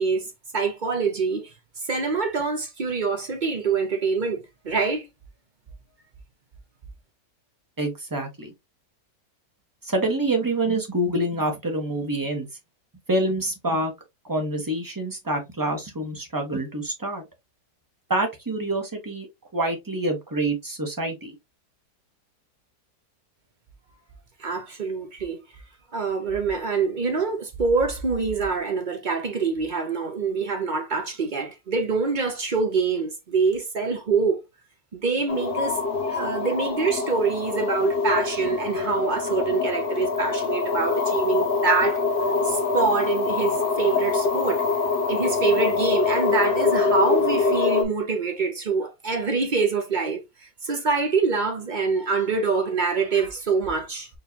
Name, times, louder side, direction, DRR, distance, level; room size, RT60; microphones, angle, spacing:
voice 1, 0.0-1.5 1.8-4.4 4.6-5.1 24.4-25.4 25.9-34.4 34.9-42.0 42.4-44.6 45.1-54.1, right 4 dB, 50° right, 0.5 m, -25 dB
voice 2, 7.8-8.5 9.8-12.5 13.1-13.9 14.3-17.2 18.1-19.3 19.5-21.3, right 1 dB, 15° right, 0.9 m, -26 dB
sound 1, 35.3-47.8, left 4 dB, 55° left, 0.6 m, -24 dB
4.5 x 3.2 x 2.7 m
omnidirectional pair, 1.7 m